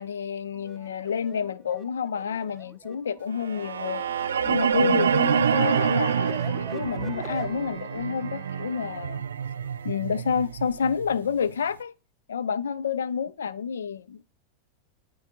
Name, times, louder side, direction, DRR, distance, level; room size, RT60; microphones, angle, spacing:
voice 1, 0.0-4.1 4.4-9.2 9.8-11.9 12.3-14.2, left 7 dB, 85° left, 0.3 m, -29 dB
sound 1, 0.5-7.5, right 5 dB, 20° right, 0.6 m, -43 dB
sound 2, 3.4-11.5, right 7 dB, 85° right, 0.4 m, -27 dB
Trumpet, 4.9-9.2, left 2 dB, 45° left, 2.6 m, -53 dB
8.2 x 3.9 x 3.6 m
hypercardioid pair, 100°, 0 cm